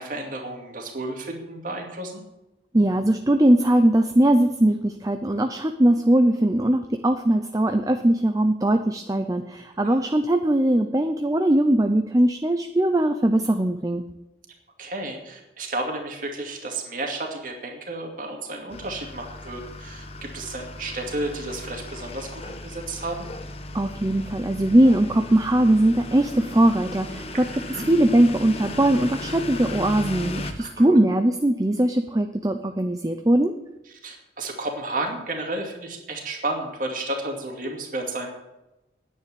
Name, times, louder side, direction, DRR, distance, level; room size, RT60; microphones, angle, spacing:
voice 1, 0.0-2.2 9.8-10.0 14.8-23.3 27.3-27.9 30.6-31.0 33.9-38.3, right 2 dB, 50° right, 2 dB, 2.5 m, -32 dB
voice 2, 2.7-14.0 23.7-27.5 27.9-33.5, right 1 dB, 20° right, 7 dB, 0.6 m, -20 dB
sound 1, 18.7-30.5, left 2 dB, 35° left, 1.2 m, -36 dB
10.0 x 9.2 x 9.9 m, 0.95 s
head